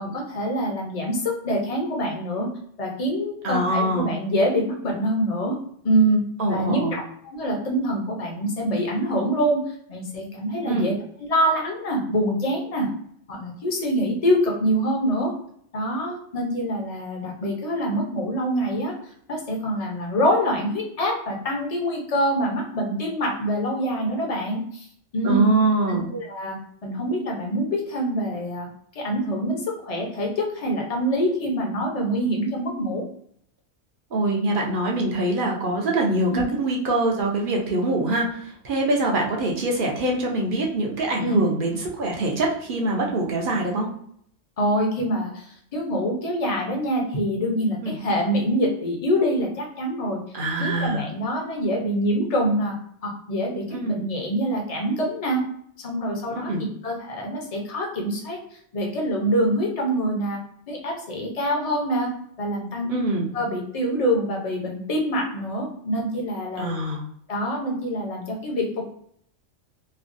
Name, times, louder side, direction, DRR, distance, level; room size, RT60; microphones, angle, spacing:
voice 1, 0.0-2.5 2.8-5.6 5.8-6.2 6.5-9.6 9.9-10.9 11.2-12.9 13.3-15.3 15.7-18.9 19.3-24.9 25.1-25.5 25.9-26.6 26.8-28.7 28.9-33.1 36.3-36.4 41.2-41.4 44.6-50.2 50.6-52.7 53.0-55.4 55.8-56.5 56.8-58.4 58.7-60.4 60.7-62.1 62.4-62.9 63.3-66.8 67.3-68.9, equal, 35° left, 0 dB, 0.7 m, -25 dB
voice 2, 3.4-4.1 6.4-6.9 10.6-10.9 25.2-26.1 34.1-43.9 47.8-48.0 50.3-51.0 53.7-54.0 56.3-56.6 62.9-63.2 66.6-67.0, right 2 dB, 50° right, -1 dB, 0.8 m, -24 dB
3.1 x 2.2 x 2.6 m, 0.66 s
omnidirectional pair, 1.3 m